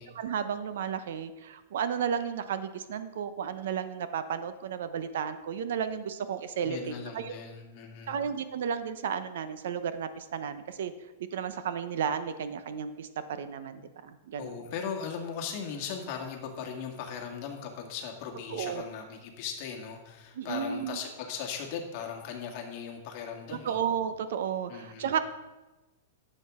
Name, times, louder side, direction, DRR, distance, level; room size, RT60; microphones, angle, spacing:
voice 1, 0.1-7.4 8.1-10.9 11.2-14.5 18.5-18.9 20.4-21.0 23.6-25.2, right 7 dB, 70° right, 11 dB, 0.8 m, -33 dB
voice 2, 6.6-8.2 14.4-23.8 24.7-25.1, left 7 dB, 45° left, 2 dB, 1.9 m, -38 dB
12.0 x 7.7 x 3.7 m, 1.1 s
supercardioid pair, 155°, 0 cm